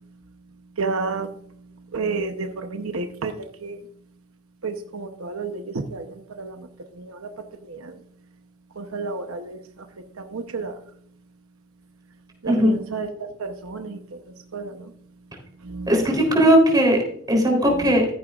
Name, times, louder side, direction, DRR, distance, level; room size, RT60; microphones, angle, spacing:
voice 1, 0.8-1.3 1.9-3.8 4.6-6.7 7.0-7.3 7.6-7.9 8.8-9.6 10.2-10.8 12.4-14.2 14.5-14.9 15.6-15.9 16.4-16.5, right 4 dB, 75° right, 6 dB, 0.9 m, -31 dB
voice 2, 15.9-17.0 17.3-18.1, equal, 20° right, 0 dB, 3.5 m, -18 dB
14.0 x 9.8 x 2.4 m, 0.66 s
head